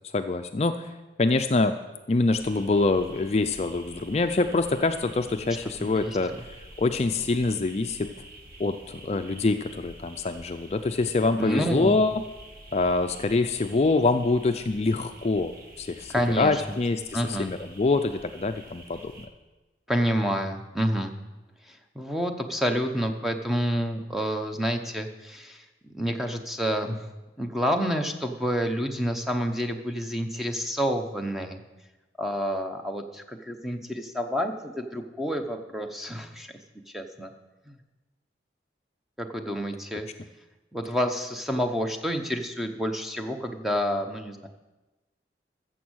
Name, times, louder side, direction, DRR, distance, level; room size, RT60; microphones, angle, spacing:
voice 1, 0.1-1.8 2.1-6.3 6.8-8.1 8.6-12.2 12.7-19.3, left 3 dB, 35° left, 8 dB, 0.4 m, -25 dB
sound 1, 2.3-19.3, right 1 dB, 55° right, 1.5 m, -48 dB
voice 2, 5.8-6.2 11.4-12.0 16.1-16.6 17.1-17.5 19.9-21.1 21.6-27.1 27.4-31.6 32.2-36.5 36.9-37.3 37.7-37.8 39.2-40.1 40.7-44.5, equal, ahead, 4 dB, 0.8 m, -29 dB
14.5 x 7.3 x 6.3 m, 1.1 s
head